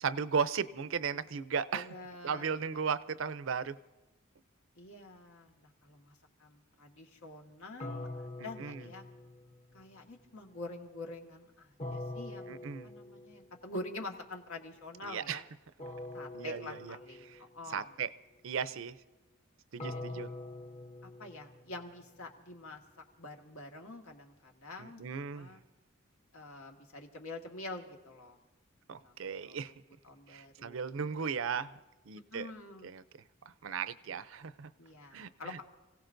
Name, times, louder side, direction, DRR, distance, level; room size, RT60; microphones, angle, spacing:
voice 1, 0.0-1.9 2.2-3.8 8.4-8.9 12.5-12.9 15.0-15.4 16.3-17.0 17.2-17.4 17.7-18.1 18.4-19.0 19.7-20.3 24.8-25.6 28.9-29.7 30.3-31.7 32.1-32.5 32.8-33.0 33.6-34.7 35.1-35.6, right 6 dB, 65° right, 15 dB, 0.5 m, -36 dB
voice 2, 1.7-2.5 4.7-9.1 9.7-15.4 16.1-18.0 19.9-20.2 21.0-22.8 23.2-25.6 26.3-28.4 29.0-29.6 30.0-30.9 32.1-32.9 34.8-35.6, left 2 dB, 90° left, 2 dB, 1.7 m, -46 dB
sound 1, 7.8-9.8 11.8-13.6 15.8-17.6 19.8-22.0, left 2 dB, 30° left, 0.7 m, -44 dB
29.5 x 17.0 x 2.6 m, 1.1 s
head